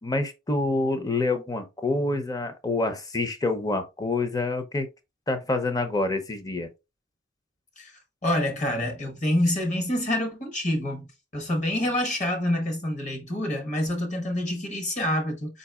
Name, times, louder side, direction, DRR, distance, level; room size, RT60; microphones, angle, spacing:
voice 1, 0.0-4.9 5.3-6.7, left 2 dB, 20° left, 0.6 m, -27 dB
voice 2, 8.2-11.1 11.3-15.6, left 1 dB, 40° left, 1.1 m, -27 dB
4.6 x 4.0 x 2.3 m
head